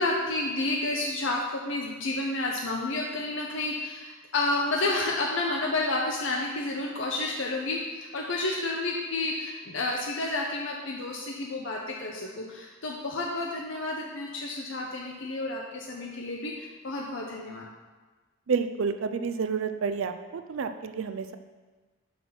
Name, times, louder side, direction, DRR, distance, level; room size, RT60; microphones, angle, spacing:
voice 1, 0.0-17.6, left 2 dB, 65° left, -1 dB, 0.8 m, -30 dB
voice 2, 18.5-21.4, right 5 dB, 75° right, 9 dB, 0.4 m, -29 dB
6.0 x 5.5 x 5.9 m, 1.3 s
head